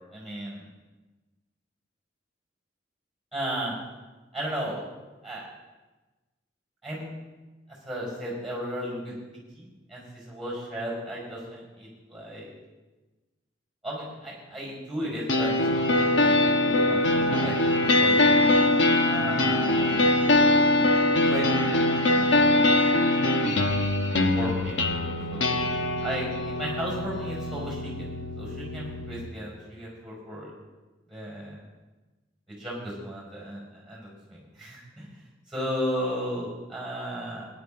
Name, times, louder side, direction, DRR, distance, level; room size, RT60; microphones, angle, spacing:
voice 1, 0.1-0.6 3.3-3.7 4.3-4.9 5.2-5.4 6.8-7.1 7.8-9.1 9.5-12.5 13.8-17.5 17.8-18.2 19.0-20.2 21.2-21.7 22.1-22.5 24.1-25.6 26.0-28.1 28.4-30.5 31.1-31.6 32.5-35.1 35.5-37.5, equal, 5° right, -3 dB, 5.2 m, -35 dB
sound 1, 15.3-29.3, left 2 dB, 80° left, 1.1 m, -23 dB
18.0 x 10.0 x 3.7 m, 1.2 s
head